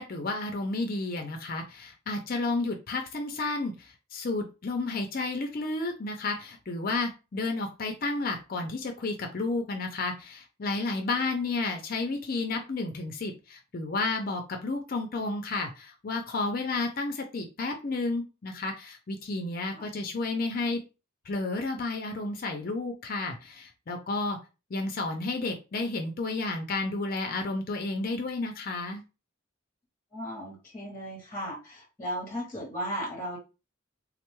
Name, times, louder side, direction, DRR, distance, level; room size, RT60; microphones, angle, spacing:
voice 1, 0.0-20.8 21.3-24.4 24.7-29.0, left 3 dB, 45° left, 4 dB, 0.4 m, -31 dB
voice 2, 30.1-33.4, equal, 10° left, -1 dB, 0.8 m, -36 dB
3.5 x 2.2 x 3.0 m, 0.30 s
head